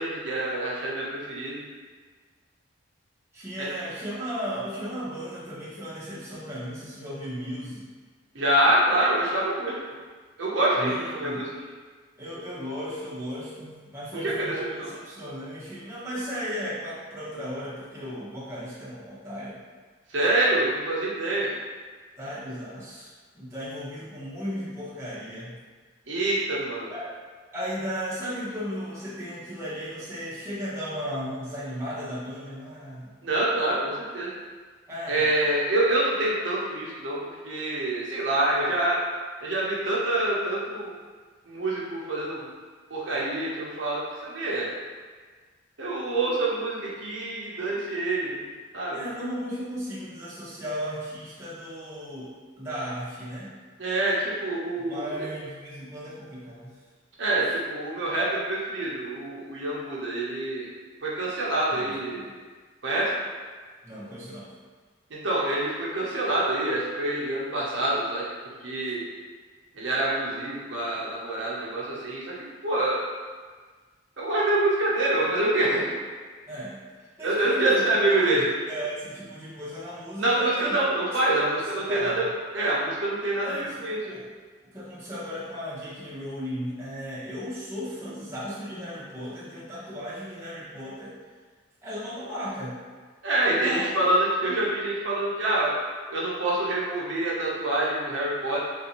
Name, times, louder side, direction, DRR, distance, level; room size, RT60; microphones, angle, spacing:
voice 1, 0.0-1.6 3.6-3.7 8.3-9.8 10.4-11.5 14.2-14.3 14.8-14.9 20.1-21.5 26.1-26.9 33.2-34.3 35.1-39.0 39.4-40.9 41.5-42.5 42.9-44.7 45.8-48.4 48.7-49.1 53.8-55.1 57.2-60.7 61.0-62.2 62.8-63.1 65.1-68.3 68.6-69.0 69.7-72.3 72.6-73.0 74.2-75.8 77.2-78.5 80.2-82.3 82.5-84.0 93.2-95.7 96.1-98.6, right 1 dB, 65° right, -6 dB, 0.7 m, -26 dB
voice 2, 3.3-7.9 10.7-11.4 12.2-19.6 22.2-25.6 26.9-27.1 27.5-33.1 34.9-35.3 48.9-53.5 54.9-56.7 61.7-62.3 63.8-64.5 76.5-78.4 78.7-80.8 81.8-82.2 83.4-84.2 84.7-91.1 91.8-92.8 93.5-93.9 94.4-94.6, equal, 15° right, -9 dB, 0.8 m, -35 dB
3.7 x 2.6 x 2.8 m, 1.5 s
head